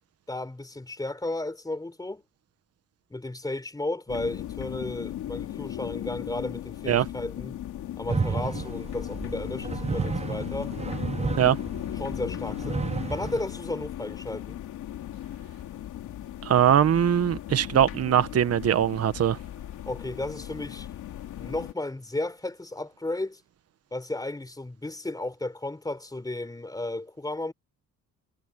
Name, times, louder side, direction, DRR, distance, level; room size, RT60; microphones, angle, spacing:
voice 1, 0.3-2.2 3.1-7.6 8.0-10.7 12.0-14.6 19.9-20.9 21.4-23.4 23.9-27.5, left 2 dB, 10° left, 4.7 m, -34 dB
sound 1, 4.1-21.7, left 12 dB, 80° left, 3.0 m, -37 dB
sound 2, 8.1-13.4, right 4 dB, 20° right, 0.8 m, -32 dB
voice 2, 16.4-19.4, right 9 dB, 55° right, 1.3 m, -21 dB
cardioid pair, 90°, 30 cm